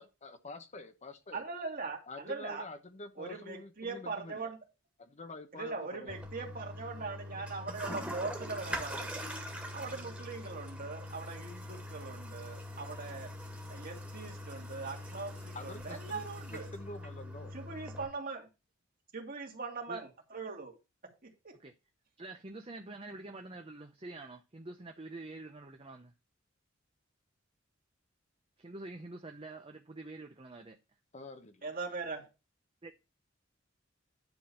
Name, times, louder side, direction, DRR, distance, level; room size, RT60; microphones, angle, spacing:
voice 1, 0.0-1.4 2.1-4.5 5.0-6.3 15.5-16.2 16.5-17.5 31.1-31.7, left 2 dB, 35° left, 1.0 m, -47 dB
voice 2, 1.3-2.7 3.2-4.6 5.5-9.2 9.7-13.3 13.7-16.7 17.5-18.5 19.1-20.8 21.0-21.5 31.6-32.3, right 4 dB, 45° right, 2.4 m, -41 dB
Toilet flush, 6.1-18.1, equal, 5° right, 1.9 m, -43 dB
voice 3, 22.2-26.1 28.6-30.8 32.8-32.9, right 2 dB, 30° right, 0.8 m, -46 dB
10.5 x 4.0 x 6.9 m
head